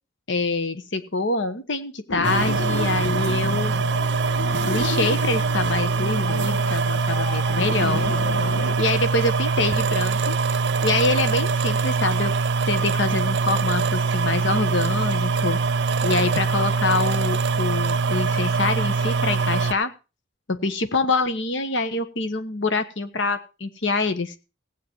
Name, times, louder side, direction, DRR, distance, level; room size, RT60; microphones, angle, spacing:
voice 1, 0.3-3.7 4.7-8.1 8.8-10.4 10.8-12.3 12.7-15.6 16.0-19.9 20.5-24.4, left 3 dB, 65° left, 10 dB, 1.2 m, -25 dB
sound 1, 2.1-8.8, left 3 dB, 80° left, 1.0 m, -32 dB
sound 2, 2.2-19.7, right 4 dB, 55° right, 0.5 m, -23 dB
16.5 x 8.6 x 4.5 m, 0.31 s
head